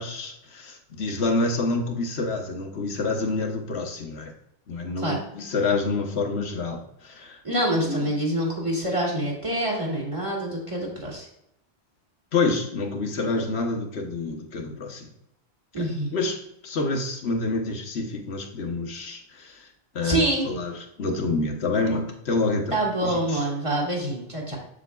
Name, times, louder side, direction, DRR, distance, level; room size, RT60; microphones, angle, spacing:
voice 1, 0.0-4.3 4.7-7.4 7.9-8.1 12.3-15.1 15.8-19.7 19.9-20.7 21.0-23.4, left 3 dB, 75° left, 2 dB, 1.3 m, -28 dB
voice 2, 7.4-11.3 15.7-16.1 20.0-20.5 22.7-24.6, right 1 dB, 30° right, -2 dB, 2.1 m, -26 dB
7.6 x 7.4 x 2.3 m, 0.78 s
omnidirectional pair, 1.1 m